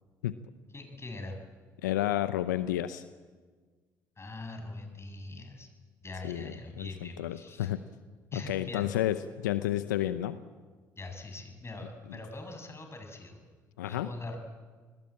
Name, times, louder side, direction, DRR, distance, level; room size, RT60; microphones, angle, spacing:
voice 1, 0.7-1.4 4.2-5.7 6.0-7.7 8.3-8.9 11.0-13.4 13.8-14.4, left 2 dB, 25° left, 5 dB, 7.2 m, -42 dB
voice 2, 1.8-3.0 6.2-6.5 6.8-7.8 8.3-10.4 13.8-14.1, left 13 dB, 85° left, 13 dB, 0.7 m, -31 dB
27.5 x 20.5 x 8.9 m, 1.5 s
hypercardioid pair, 55°, 10 cm